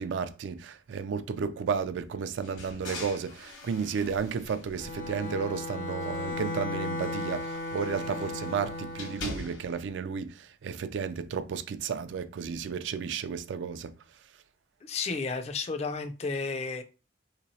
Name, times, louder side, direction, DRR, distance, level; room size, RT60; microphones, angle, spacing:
voice 1, 0.0-13.9, right 6 dB, 70° right, 0.3 m, -33 dB
sound 1, 2.4-5.6 5.9-9.9, left 2 dB, 85° left, 1.2 m, -44 dB
Bowed string instrument, 4.7-9.2, left 2 dB, 65° left, 0.7 m, -35 dB
voice 2, 14.8-16.8, left 4 dB, 35° left, 0.3 m, -32 dB
3.4 x 2.9 x 2.7 m
head